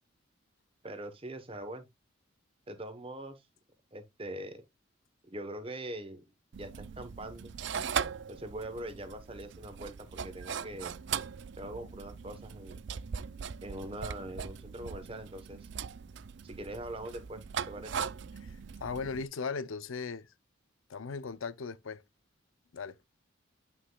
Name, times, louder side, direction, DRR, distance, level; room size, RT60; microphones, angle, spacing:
voice 1, 0.8-1.9 2.7-3.5 3.9-4.6 5.3-6.2 6.6-7.5 8.3-10.9 11.6-12.8 13.6-15.7 16.4-18.0, right 1 dB, 25° right, 1.1 m, -42 dB
sound 1, 6.5-19.2, right 7 dB, 60° right, 0.4 m, -40 dB
voice 2, 18.4-20.3 20.9-22.0 22.7-23.0, left 5 dB, 85° left, 0.6 m, -38 dB
9.6 x 5.8 x 2.3 m
head